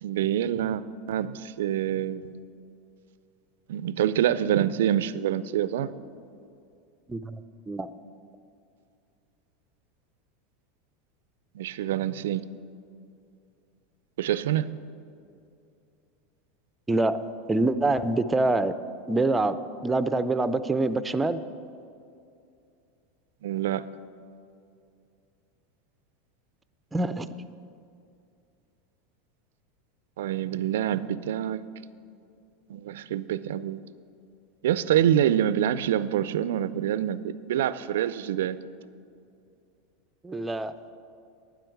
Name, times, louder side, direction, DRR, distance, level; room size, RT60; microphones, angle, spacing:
voice 1, 0.0-2.4 3.7-5.9 11.5-12.5 14.2-14.7 23.4-23.9 30.2-31.6 32.7-33.8 34.6-38.6, right 11 dB, 75° right, 16 dB, 0.4 m, -26 dB
voice 2, 7.1-7.4 7.7-7.9 16.9-17.2 17.5-18.7 19.1-19.6 19.8-21.4 26.9-27.3 40.2-40.7, right 2 dB, 15° right, 13 dB, 0.5 m, -25 dB
12.0 x 9.4 x 4.7 m, 2.5 s
hypercardioid pair, 95°, 0 cm